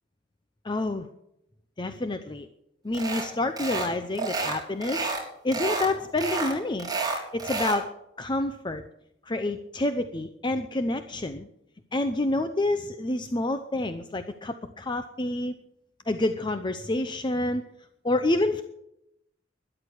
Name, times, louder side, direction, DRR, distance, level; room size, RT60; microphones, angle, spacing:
voice 1, 0.6-1.1 1.8-2.5 2.8-5.1 5.4-6.9 7.3-7.9 8.2-8.8 9.3-11.5 11.9-15.5 16.1-17.6 18.0-18.6, left 2 dB, 25° left, 8 dB, 0.7 m, -28 dB
sound 1, 2.9-3.3 3.6-3.9 4.2-5.2 5.5-5.9 6.2-7.8, right 3 dB, 20° right, 3.7 m, -30 dB
13.0 x 11.0 x 8.0 m, 0.81 s
head